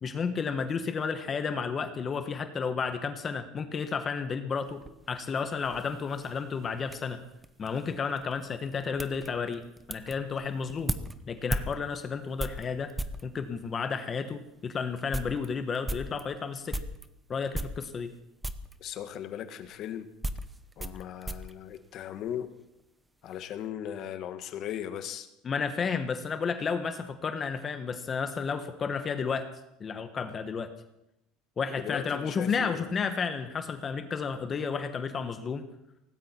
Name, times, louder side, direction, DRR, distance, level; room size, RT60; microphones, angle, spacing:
voice 1, 0.0-4.8 5.1-7.2 7.6-9.6 9.9-10.9 11.3-12.9 13.2-16.8 17.3-18.1 25.4-29.5 29.8-30.7 31.6-35.6, left 5 dB, 25° left, 8 dB, 1.3 m, -32 dB
sound 1, 4.6-13.3 14.0-14.1 14.5-14.6 14.9-17.1 17.5-18.2 18.4-18.8 19.6-22.5 22.8-23.4, right 1 dB, 10° right, 0.8 m, -38 dB
voice 2, 18.8-20.1 20.8-22.5 23.2-25.3 31.7-32.9, left 10 dB, 45° left, 9 dB, 1.5 m, -38 dB
18.0 x 16.5 x 4.4 m, 0.84 s
cardioid pair, 140°, 0 cm